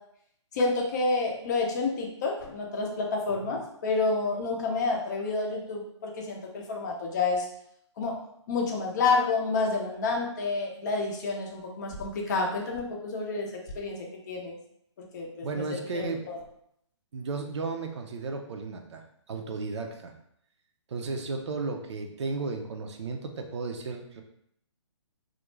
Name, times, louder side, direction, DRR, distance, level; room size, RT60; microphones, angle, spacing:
voice 1, 0.5-7.5 8.0-8.2 8.5-13.5 13.7-14.6 15.1-16.4, left 3 dB, 35° left, 0 dB, 0.5 m, -29 dB
voice 2, 15.4-16.2 17.1-20.1 20.9-24.2, right 4 dB, 65° right, 4 dB, 0.5 m, -34 dB
2.4 x 2.1 x 3.1 m, 0.73 s
hypercardioid pair, 145°, 16 cm